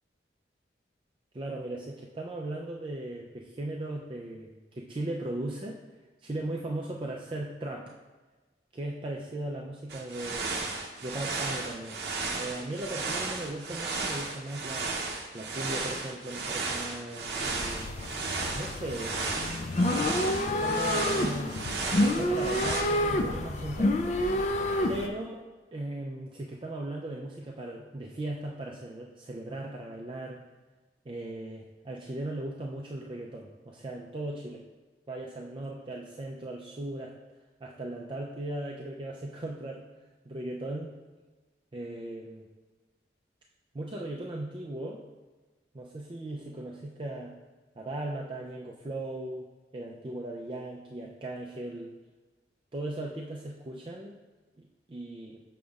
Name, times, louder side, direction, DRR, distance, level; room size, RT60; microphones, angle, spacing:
voice 1, 1.3-5.8 6.2-7.9 8.7-10.7 11.0-12.0 12.4-15.0 15.3-18.0 18.5-19.2 20.4-21.6 22.1-24.1 24.9-25.4 25.7-30.4 31.1-34.6 35.1-37.2 37.6-39.9 40.3-40.9 41.7-42.5 43.7-45.0 45.7-47.3 47.8-49.5 49.7-51.9 52.7-54.2 54.6-55.4, right 1 dB, 30° right, -1 dB, 0.4 m, -37 dB
sound 1, 9.9-22.8, right 3 dB, 65° right, 0.7 m, -34 dB
sound 2, 17.4-25.1, left 1 dB, 40° left, 0.4 m, -29 dB
6.9 x 6.2 x 2.4 m, 1.2 s
head